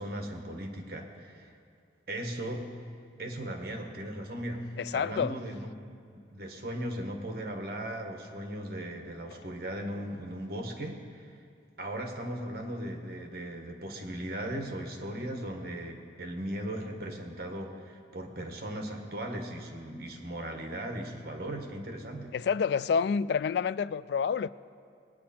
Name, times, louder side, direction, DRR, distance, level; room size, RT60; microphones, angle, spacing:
voice 1, 0.0-1.5 2.1-2.7 3.2-4.7 4.9-5.7 6.1-11.3 11.8-22.3, right 1 dB, 55° right, 1.4 m, -37 dB
voice 2, 4.8-5.4 9.4-9.5 22.3-24.5, left 6 dB, 65° left, 0.3 m, -28 dB
19.5 x 9.5 x 4.3 m
head